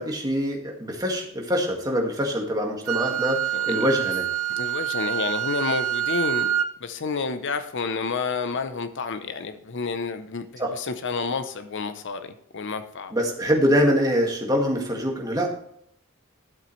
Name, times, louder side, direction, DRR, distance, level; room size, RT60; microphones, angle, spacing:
voice 1, 0.0-4.3 10.6-10.7 13.1-15.5, equal, 15° right, 1 dB, 1.8 m, -24 dB
Wind instrument woodwind instrument, 2.9-6.7, right 11 dB, 75° right, 0.8 m, -26 dB
voice 2, 3.5-3.8 4.5-6.5 6.8-13.1, left 4 dB, 55° left, 10 dB, 0.7 m, -30 dB
12.0 x 7.9 x 3.2 m, 0.69 s
head